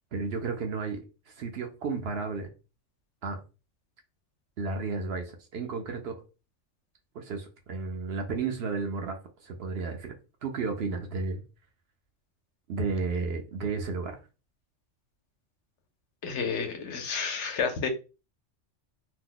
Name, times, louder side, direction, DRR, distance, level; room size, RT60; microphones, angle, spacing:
voice 1, 0.1-2.5 3.2-3.4 4.6-6.1 7.1-10.1 10.4-11.4 12.7-14.2, right 4 dB, 60° right, 0.8 m, -33 dB
voice 2, 16.2-17.9, left 5 dB, 70° left, 0.9 m, -30 dB
2.9 x 2.1 x 3.7 m
omnidirectional pair, 1.3 m